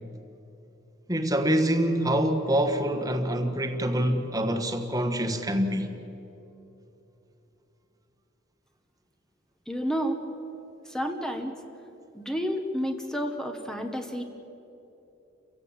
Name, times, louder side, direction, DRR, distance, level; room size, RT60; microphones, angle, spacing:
voice 1, 1.1-6.0, right 1 dB, 20° right, 1.5 m, -25 dB
voice 2, 9.7-10.2 10.9-11.5 12.1-14.2, equal, 5° left, 1.2 m, -30 dB
30.0 x 16.0 x 7.4 m
head